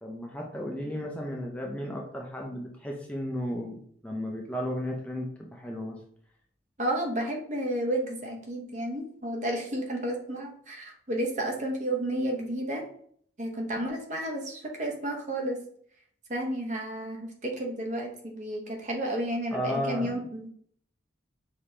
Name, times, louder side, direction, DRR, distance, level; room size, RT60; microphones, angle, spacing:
voice 1, 0.0-6.0 19.5-20.1, equal, 5° left, -1 dB, 0.5 m, -34 dB
voice 2, 6.8-12.8 13.4-15.6 16.3-20.5, right 1 dB, 40° right, 1 dB, 0.7 m, -32 dB
5.1 x 2.8 x 3.2 m, 0.62 s
head